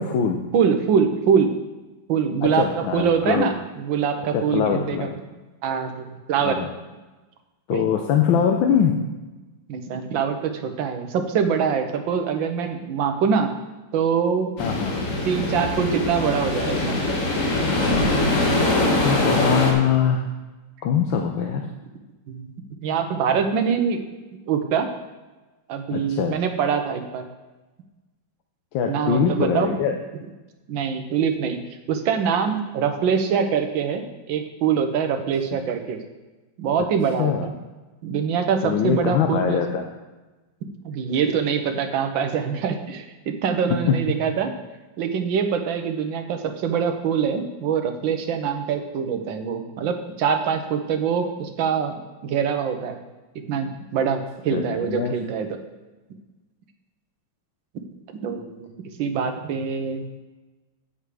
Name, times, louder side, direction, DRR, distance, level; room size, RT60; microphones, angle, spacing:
voice 1, 0.0-0.4 2.4-3.5 4.3-5.1 6.4-6.7 7.7-8.9 14.6-15.0 18.6-20.2 20.8-21.7 25.9-26.4 28.7-30.0 37.2-37.5 38.6-39.9 43.9-44.0 54.5-55.1, left 7 dB, 80° left, 3 dB, 1.5 m, -22 dB
voice 2, 0.5-1.5 2.1-5.1 5.6-6.6 7.7-7.8 9.7-13.5 13.9-14.5 15.2-17.0 22.3-22.6 22.8-24.0 24.5-24.9 25.7-27.3 28.9-29.7 30.7-31.6 31.9-36.0 36.6-37.6 38.0-39.6 40.8-44.5 45.0-52.0 52.2-53.0 53.5-55.5 58.2-58.7 59.0-60.0, right 7 dB, 80° right, 6 dB, 1.6 m, -24 dB
sound 1, 14.6-19.7, left 2 dB, 45° left, 1.6 m, -22 dB
8.2 x 8.0 x 4.9 m, 1.2 s
omnidirectional pair, 2.1 m